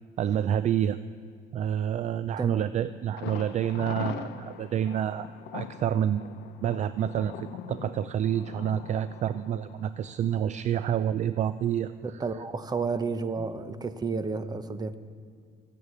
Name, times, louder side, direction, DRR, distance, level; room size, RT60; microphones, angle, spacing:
voice 1, 0.2-1.0 1.5-5.3 5.5-11.9, right 9 dB, 45° right, 14 dB, 0.4 m, -28 dB
Thunder, 3.2-10.9 11.2-11.3 11.7-11.8, left 9 dB, 80° left, 0.7 m, -42 dB
voice 2, 12.0-14.9, right 4 dB, 25° right, 12 dB, 0.8 m, -31 dB
14.0 x 9.5 x 8.3 m, 2.1 s
cardioid pair, 110°, 17 cm